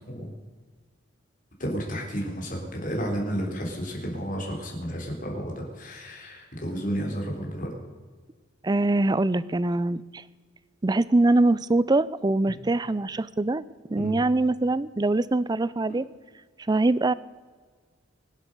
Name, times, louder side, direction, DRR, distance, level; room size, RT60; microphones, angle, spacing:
voice 1, 1.6-7.7 14.0-14.2, equal, 45° left, 0 dB, 3.9 m, -32 dB
voice 2, 8.6-10.2 10.8-13.6 13.9-16.1 16.7-17.1, right 2 dB, 20° right, 18 dB, 0.4 m, -23 dB
24.0 x 8.2 x 6.7 m, 1.5 s
head